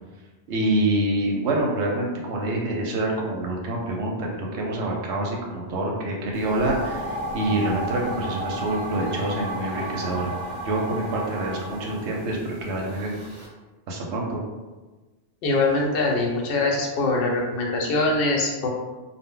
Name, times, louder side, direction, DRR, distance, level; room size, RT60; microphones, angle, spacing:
voice 1, 0.5-10.3 10.6-13.2 13.9-14.4, right 1 dB, 90° right, -1 dB, 0.9 m, -26 dB
sound 1, 6.3-13.5, right 1 dB, 35° right, 0.9 m, -33 dB
voice 2, 15.4-18.7, left 2 dB, 65° left, -1 dB, 0.7 m, -23 dB
2.0 x 2.0 x 3.6 m, 1.2 s
omnidirectional pair, 1.1 m